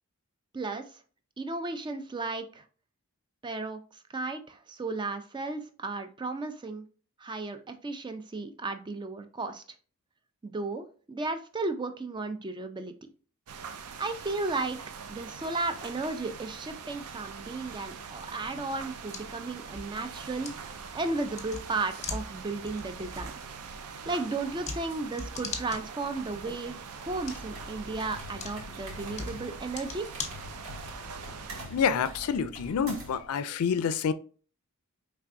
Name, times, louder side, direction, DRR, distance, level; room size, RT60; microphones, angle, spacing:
voice 1, 0.5-0.8 1.4-2.6 3.4-6.8 7.2-9.6 10.4-12.9 14.0-14.8 15.1-23.3 24.1-30.1, right 3 dB, 20° right, 0.4 m, -34 dB
sound 1, 13.5-31.7, right 6 dB, 90° right, 0.5 m, -43 dB
sound 2, 18.6-31.0, left 4 dB, 30° left, 0.8 m, -43 dB
sound 3, 26.9-33.3, equal, 60° right, 1.2 m, -45 dB
voice 2, 31.7-34.1, left 6 dB, 75° left, 0.4 m, -28 dB
4.5 x 3.2 x 2.5 m
head